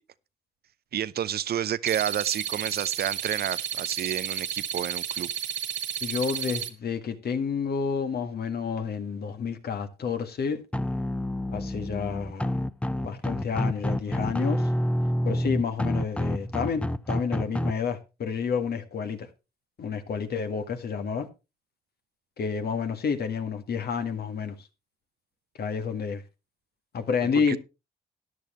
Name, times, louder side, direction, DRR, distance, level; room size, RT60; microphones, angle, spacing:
voice 1, 0.9-5.3 27.3-27.6, right 10 dB, 60° right, 0.7 m, -30 dB
sound 1, 1.9-6.7, right 9 dB, 75° right, 1.2 m, -32 dB
voice 2, 6.0-10.6 11.5-12.5 13.0-14.7 15.2-19.3 19.8-21.3 22.4-24.7 25.6-26.2 26.9-27.6, left 6 dB, 60° left, 1.9 m, -30 dB
sound 2, 10.7-17.7, equal, 5° left, 0.7 m, -28 dB
13.5 x 10.5 x 3.2 m
supercardioid pair, 65°, 19 cm